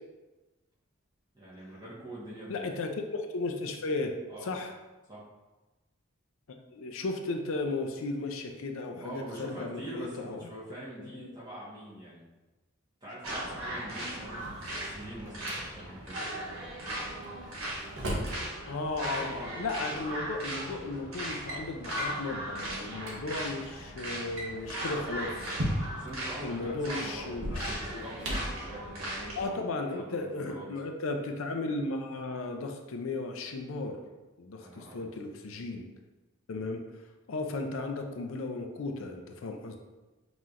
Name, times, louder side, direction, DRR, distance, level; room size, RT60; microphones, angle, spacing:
voice 1, 1.3-2.7 4.3-4.5 5.1-5.2 9.0-12.3 13.0-16.2 26.0-30.6 34.6-35.1, right 1 dB, 20° right, -8 dB, 1.3 m, -44 dB
voice 2, 2.5-4.1 4.4-4.7 6.7-10.4 11.0-11.3 18.3-25.6 26.4-28.3 29.4-34.0 34.4-35.9 36.5-36.8 37.3-39.8, left 3 dB, 80° left, 4 dB, 0.5 m, -35 dB
sound 1, 13.2-29.4, right 1 dB, 90° right, 1.3 m, -38 dB
Drawer open or close, 14.2-15.6 17.2-18.4 19.7-19.8 20.6-20.9 21.2-21.6 22.0-22.2 22.7-22.8 23.0-23.2 24.2-26.1 27.3-28.6, equal, 70° right, 1.0 m, -36 dB
5.6 x 3.0 x 2.5 m, 1.1 s
head